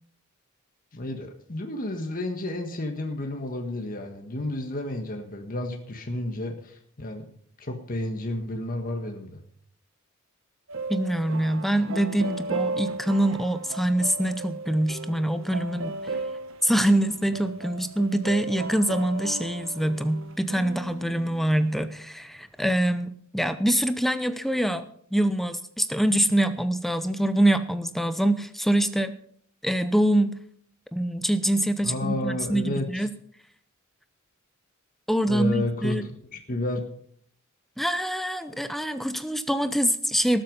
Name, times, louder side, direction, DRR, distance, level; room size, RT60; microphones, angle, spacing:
voice 1, 0.9-7.3 7.6-9.4 31.8-33.1 35.3-36.0 36.3-36.9, left 1 dB, 40° left, 3 dB, 1.6 m, -31 dB
sound 1, 10.7-21.8, right 2 dB, 70° right, 1.0 m, -36 dB
voice 2, 10.9-16.2 16.6-29.1 29.6-30.3 30.9-33.1 35.1-36.0 37.8-40.4, right 1 dB, ahead, 10 dB, 0.6 m, -25 dB
18.5 x 7.9 x 5.4 m, 0.62 s
head